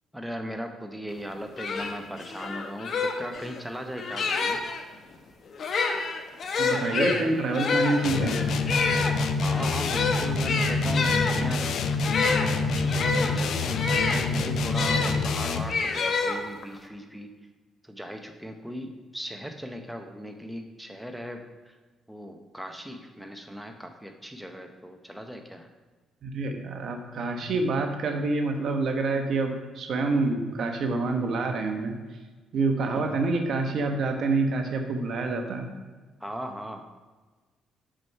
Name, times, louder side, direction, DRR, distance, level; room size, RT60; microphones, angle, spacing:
voice 1, 0.1-4.6 9.4-11.8 12.6-17.3 17.8-21.7 22.1-25.7 33.0-33.1 36.2-36.8, equal, ahead, 4 dB, 0.7 m, -38 dB
sound 1, 1.2-1.3 1.6-4.8 5.5-15.1 15.7-16.8, left 4 dB, 50° left, 0.9 m, -28 dB
voice 2, 6.6-8.5 26.2-32.0 32.5-35.7, right 3 dB, 60° right, 4 dB, 1.1 m, -27 dB
sound 2, 8.0-15.8, left 3 dB, 70° left, 0.5 m, -27 dB
6.4 x 6.1 x 5.4 m, 1.3 s
cardioid pair, 100°, 0 cm